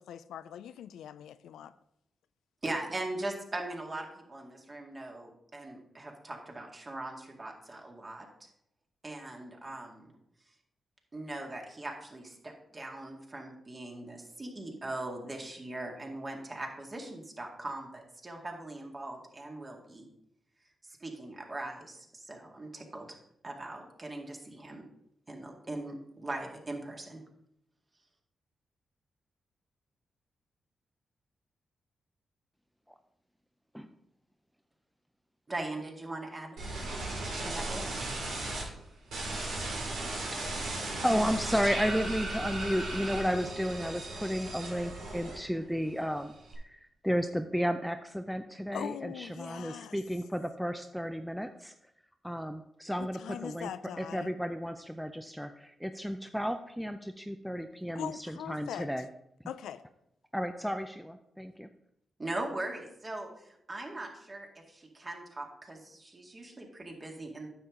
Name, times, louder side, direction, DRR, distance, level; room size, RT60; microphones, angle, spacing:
voice 1, 0.0-1.7 48.7-50.0 53.0-54.3 57.9-58.9 59.5-59.8, left 10 dB, 85° left, 13 dB, 0.3 m, -41 dB
voice 2, 2.6-8.3 9.0-10.1 11.1-20.1 20.9-23.2 23.4-24.8 25.3-27.2 35.5-36.6 37.4-37.8 62.2-63.3 63.7-67.5, right 2 dB, 35° right, 1 dB, 2.1 m, -40 dB
sound 1, 36.6-38.6 39.1-45.7 46.0-46.5, right 2 dB, 85° right, 2.7 m, -36 dB
voice 3, 41.0-51.7 52.2-53.7 54.0-59.1 60.3-61.7, equal, ahead, 7 dB, 0.5 m, -33 dB
9.6 x 6.9 x 3.7 m, 0.77 s
supercardioid pair, 55°, 0 cm